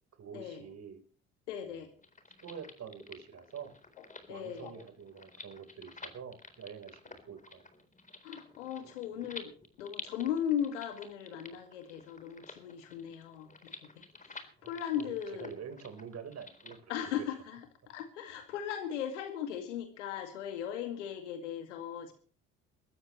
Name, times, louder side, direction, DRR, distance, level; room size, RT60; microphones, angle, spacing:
voice 1, 0.2-1.0 1.7-1.8 2.4-3.7 4.3-7.0 7.3-7.7 14.6-17.2, right 7 dB, 45° right, 9 dB, 4.2 m, -46 dB
voice 2, 1.5-1.9 4.0-4.8 8.2-9.5 9.8-15.5 16.9-17.6 17.9-22.1, left 9 dB, 85° left, 6 dB, 2.2 m, -38 dB
sound 1, 2.0-16.8, left 3 dB, 20° left, 4.0 m, -51 dB
23.0 x 13.5 x 3.2 m, 0.40 s
hypercardioid pair, 60°, 35 cm